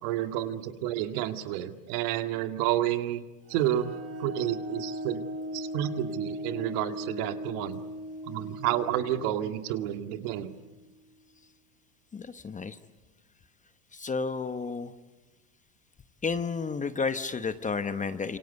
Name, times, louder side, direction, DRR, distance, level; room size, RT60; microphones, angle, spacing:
voice 1, 0.0-3.2 3.5-3.9 4.2-5.3 5.5-7.8 8.2-10.5, right 12 dB, 65° right, 7 dB, 2.2 m, -30 dB
sound 1, 3.5-10.9, equal, 30° right, 3.7 m, -39 dB
voice 2, 12.1-12.8 13.9-14.9 16.2-18.4, left 5 dB, 15° left, 11 dB, 1.0 m, -31 dB
27.0 x 25.0 x 8.2 m, 1.1 s
supercardioid pair, 120°, 48 cm